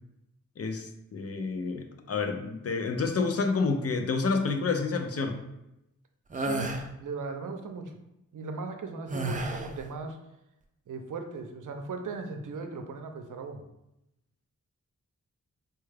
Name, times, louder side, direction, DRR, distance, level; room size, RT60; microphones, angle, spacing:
voice 1, 0.6-5.4, left 4 dB, 50° left, 5 dB, 0.4 m, -29 dB
sound 1, 6.3-6.8 9.1-9.8, right 2 dB, 25° right, 0.4 m, -31 dB
voice 2, 6.4-8.0 8.3-10.2 10.9-13.6, right 4 dB, 75° right, 5 dB, 0.5 m, -38 dB
4.4 x 2.3 x 3.2 m, 0.88 s
wide cardioid pair, 125°, 31 cm